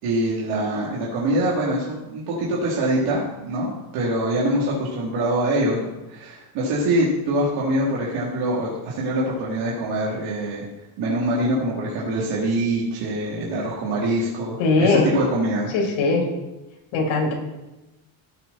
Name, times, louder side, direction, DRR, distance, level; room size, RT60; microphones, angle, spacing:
voice 1, 0.0-10.7 11.0-15.7, right 1 dB, 80° right, -6 dB, 3.8 m, -24 dB
voice 2, 14.6-15.1 15.7-16.3 16.9-17.3, left 3 dB, 75° left, -1 dB, 5.4 m, -20 dB
17.5 x 8.8 x 4.5 m, 1.0 s
cardioid pair, 155°, 48 cm